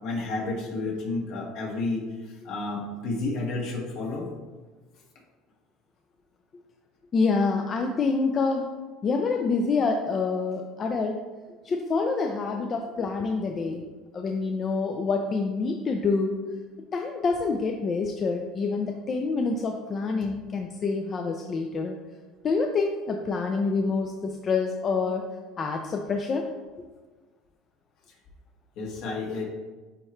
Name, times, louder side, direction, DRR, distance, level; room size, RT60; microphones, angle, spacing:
voice 1, 0.0-4.3 28.8-29.5, left 3 dB, 65° left, -2 dB, 1.8 m, -31 dB
voice 2, 7.1-8.7 9.0-11.2 11.6-13.9 14.1-16.4 16.9-22.0 22.4-25.3 25.6-26.5, left 4 dB, 35° left, 3 dB, 0.5 m, -27 dB
9.4 x 3.2 x 3.2 m, 1.3 s
supercardioid pair, 115°, 0 cm